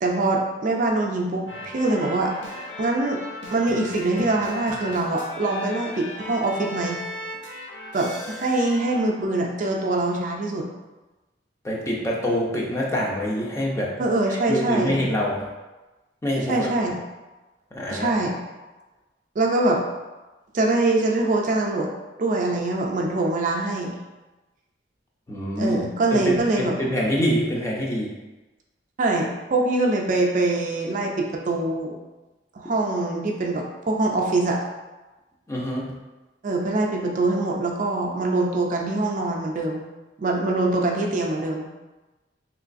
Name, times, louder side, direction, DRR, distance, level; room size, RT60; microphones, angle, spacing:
voice 1, 0.0-2.3 2.8-3.2 3.5-7.0 7.9-10.7 14.0-15.0 16.5-17.0 17.9-18.3 19.4-19.8 20.5-21.9 22.2-24.0 25.6-26.7 29.0-32.0 32.5-34.6 36.4-39.8 40.2-41.7, right 2 dB, 45° right, 0 dB, 0.4 m, -23 dB
sound 1, 1.5-9.0, left 1 dB, 85° left, 0.6 m, -37 dB
voice 2, 11.6-15.5 16.2-16.7 17.7-18.1 25.3-25.8 26.1-28.2 35.5-35.9, equal, 15° left, -4 dB, 0.5 m, -26 dB
3.2 x 3.0 x 2.5 m, 1.1 s
head